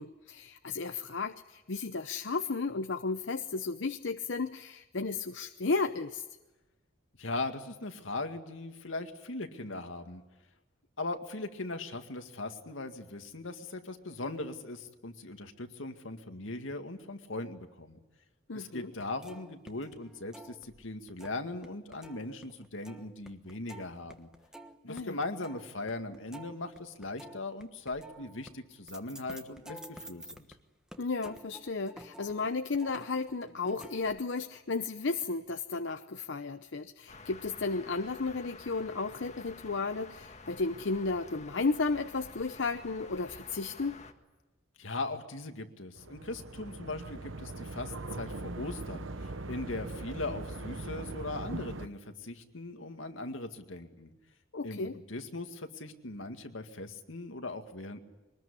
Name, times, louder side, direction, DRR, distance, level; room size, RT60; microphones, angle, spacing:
voice 1, 0.0-6.2 18.5-18.9 24.9-25.2 31.0-44.0 54.5-55.0, left 3 dB, 65° left, 8 dB, 0.8 m, -33 dB
voice 2, 7.2-10.2 11.0-18.0 18.5-24.3 24.8-30.5 44.8-54.1 54.6-58.0, left 2 dB, 85° left, 6 dB, 2.1 m, -39 dB
sound 1, 18.9-21.7 21.9-30.6 30.9-34.2, right 1 dB, 5° right, 1.3 m, -51 dB
sound 2, 37.1-44.1, left 3 dB, 35° left, 1.7 m, -50 dB
sound 3, 46.0-51.9, right 2 dB, 85° right, 1.1 m, -40 dB
23.0 x 20.0 x 10.0 m, 1.1 s
head